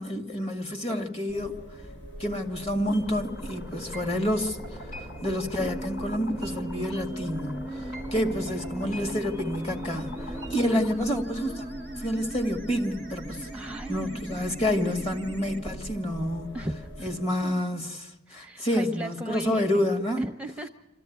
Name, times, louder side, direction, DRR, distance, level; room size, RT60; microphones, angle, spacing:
voice 1, 0.0-1.6 2.2-11.6 12.0-16.6 17.0-20.2, equal, 35° left, 3 dB, 2.2 m, -29 dB
sound 1, 1.3-17.2, equal, 85° left, 6.9 m, -43 dB
sound 2, 2.9-10.9, left 1 dB, 50° left, 4.7 m, -43 dB
sound 3, 5.6-15.6, right 1 dB, 10° left, 1.2 m, -39 dB
voice 2, 13.5-14.5 16.5-17.1 18.3-19.7 20.2-20.7, right 1 dB, 5° right, 5 dB, 0.7 m, -36 dB
26.0 x 14.0 x 9.4 m, 1.0 s
head